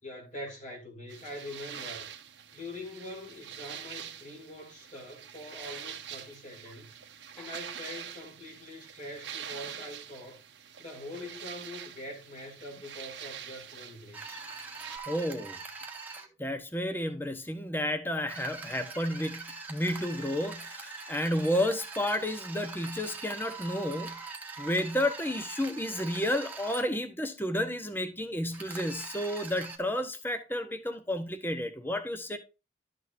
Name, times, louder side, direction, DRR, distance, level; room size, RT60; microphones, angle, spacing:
voice 1, 0.0-2.1 2.5-7.0 7.4-10.4 10.8-14.5, left 1 dB, 40° left, 3.0 m, -44 dB
sound 1, 1.1-15.0, right 8 dB, 85° right, 1.2 m, -45 dB
sound 2, 14.1-16.3 18.3-26.8 28.5-29.8, right 4 dB, 10° right, 1.4 m, -43 dB
voice 2, 15.1-15.6 16.4-24.2 24.6-32.4, left 1 dB, 10° left, 0.9 m, -31 dB
12.0 x 6.5 x 2.6 m
head